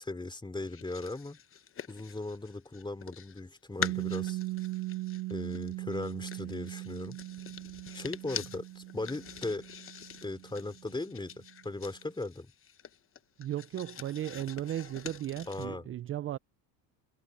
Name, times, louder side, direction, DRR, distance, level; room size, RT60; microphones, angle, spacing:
voice 1, 0.0-1.4 1.9-4.4 5.3-7.2 7.9-9.6 10.2-12.5 15.5-15.8, left 2 dB, 10° left, 3.4 m, -38 dB
sound 1, 0.6-3.4 3.8-15.7, left 8 dB, 30° left, 1.1 m, -45 dB
Piano, 3.8-11.1, right 19 dB, 60° right, 1.0 m, -39 dB
voice 2, 13.4-16.4, right 12 dB, 30° right, 0.5 m, -36 dB
supercardioid pair, 105°, 45 cm